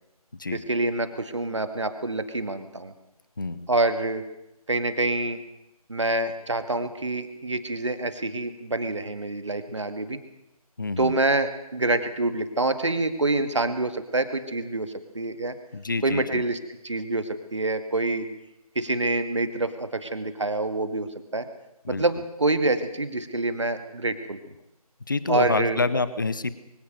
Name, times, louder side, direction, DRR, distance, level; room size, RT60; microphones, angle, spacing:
voice 1, 0.5-2.9 3.7-4.2 4.7-5.4 5.9-10.2 11.0-15.5 16.0-16.6 16.8-18.3 18.8-21.5 21.9-24.4 25.3-25.8, right 2 dB, 50° right, 9 dB, 2.0 m, -26 dB
voice 2, 3.4-3.7 10.8-11.2 15.7-16.4 21.8-22.0 25.1-26.5, left 3 dB, 30° left, 16 dB, 0.9 m, -27 dB
23.5 x 17.5 x 6.6 m, 0.88 s
figure-of-eight pair, 160°, 20 cm